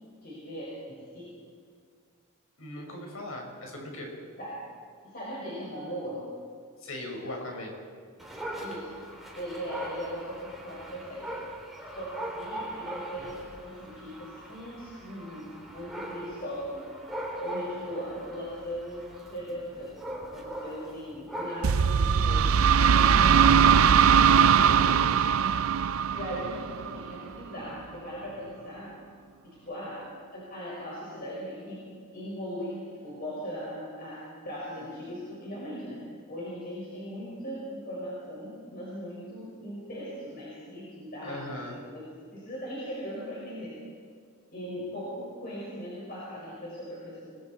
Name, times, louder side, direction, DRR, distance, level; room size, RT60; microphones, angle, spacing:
voice 1, 0.2-1.4 4.4-4.7 5.0-6.3 8.6-8.9 9.3-11.3 11.9-17.0 17.4-20.0 20.2-23.8 26.1-29.0 29.4-43.8 44.5-47.3, equal, 45° left, -6 dB, 5.7 m, -39 dB
voice 2, 2.6-4.2 6.8-7.8 24.4-25.1 41.2-41.8, left 1 dB, 75° left, 1 dB, 5.2 m, -39 dB
Dog, 8.2-21.9, right 1 dB, ahead, 3.4 m, -40 dB
sound 1, 21.6-27.3, right 7 dB, 75° right, 0.5 m, -21 dB
30.0 x 20.0 x 4.4 m, 2.1 s
head